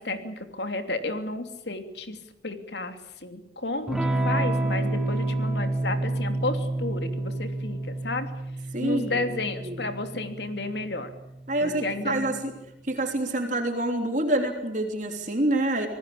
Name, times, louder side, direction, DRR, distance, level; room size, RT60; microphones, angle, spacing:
voice 1, 0.0-2.2 2.4-8.3 8.8-11.1 11.6-12.4, left 2 dB, 75° left, 7 dB, 3.0 m, -32 dB
Electric guitar / Strum, 3.9-12.2, right 2 dB, 5° right, 3.5 m, -29 dB
voice 2, 8.7-9.8 11.5-12.5 12.8-15.9, right 1 dB, 45° right, 4 dB, 3.4 m, -27 dB
27.5 x 19.5 x 8.7 m, 0.83 s
head